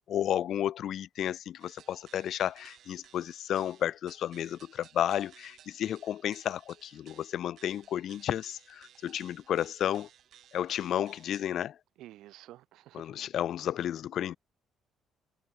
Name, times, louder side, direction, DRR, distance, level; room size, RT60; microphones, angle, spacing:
voice 1, 0.0-10.1 10.5-11.7 12.9-14.4, left 11 dB, 55° left, 0.4 m, -32 dB
sound 1, 1.6-11.5, right 10 dB, 55° right, 7.8 m, -58 dB
voice 2, 12.0-13.2, right 15 dB, 80° right, 1.2 m, -51 dB
cardioid pair, 145°, 0 cm